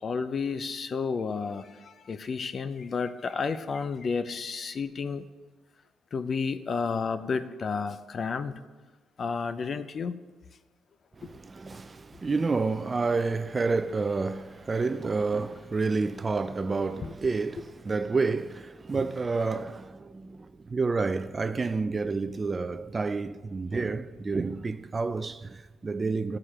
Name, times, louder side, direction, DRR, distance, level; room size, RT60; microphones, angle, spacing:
voice 1, 0.0-5.2 6.1-8.6 9.2-10.1 11.2-11.3 17.0-17.1, left 5 dB, 45° left, 0.5 m, -31 dB
voice 2, 11.2-26.4, right 4 dB, 30° right, 0.4 m, -29 dB
14.0 x 4.9 x 4.3 m
cardioid pair, 90°, 0 cm